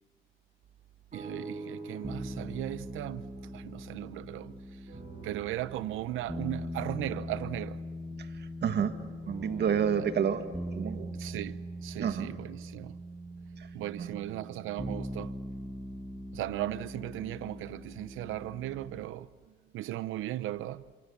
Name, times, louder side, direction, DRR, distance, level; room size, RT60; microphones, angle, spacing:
sound 1, 1.1-4.5 4.9-8.6 9.2-13.5 14.1-14.2, right 3 dB, 40° right, 7.3 m, -48 dB
voice 1, 1.1-5.0 5.2-7.8 8.1-8.2 9.9-10.1 11.1-13.0 13.7-15.4 16.3-20.8, right 14 dB, 85° right, 0.9 m, -37 dB
sound 2, 2.0-19.0, equal, 5° right, 1.7 m, -41 dB
voice 2, 8.2-9.0 9.3-10.4 10.7-11.1 12.0-12.3 13.6-13.7 14.0-14.2, right 7 dB, 60° right, 1.9 m, -30 dB
28.5 x 27.0 x 7.2 m
cardioid pair, 90°, 20 cm